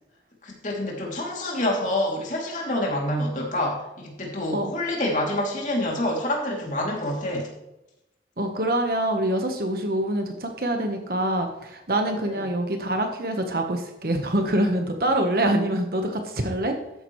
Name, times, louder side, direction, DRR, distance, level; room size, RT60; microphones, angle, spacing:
voice 1, 0.4-7.5 12.2-12.4, left 1 dB, 45° left, -2 dB, 3.0 m, -27 dB
voice 2, 8.4-16.8, right 1 dB, 55° right, 4 dB, 1.3 m, -25 dB
13.5 x 9.9 x 3.2 m, 0.88 s
head